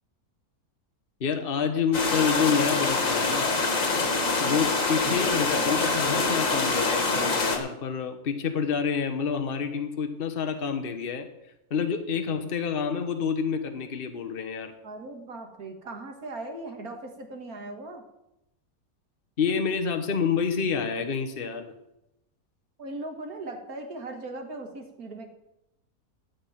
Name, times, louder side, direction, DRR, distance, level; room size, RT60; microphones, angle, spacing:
voice 1, 1.2-3.5 4.4-11.3 11.7-14.7 19.4-21.7, left 6 dB, 40° left, 6 dB, 1.3 m, -28 dB
sound 1, 1.9-7.6, left 3 dB, 60° left, 2.1 m, -25 dB
voice 2, 14.8-18.0 22.8-25.3, right 2 dB, 80° right, 4 dB, 2.2 m, -39 dB
13.5 x 5.5 x 9.3 m, 0.88 s
omnidirectional pair, 1.6 m